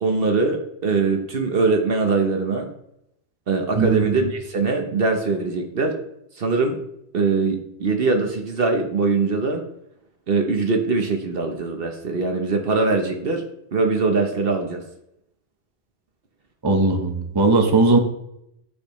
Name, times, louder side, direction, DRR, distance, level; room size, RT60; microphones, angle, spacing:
voice 1, 0.0-2.7 3.5-6.0 6.4-6.8 7.1-9.6 10.3-13.4 13.7-14.8, right 4 dB, 55° right, 4 dB, 1.1 m, -22 dB
voice 2, 16.6-18.0, right 3 dB, 25° right, 4 dB, 0.8 m, -18 dB
8.5 x 6.2 x 3.1 m, 0.77 s
omnidirectional pair, 1.2 m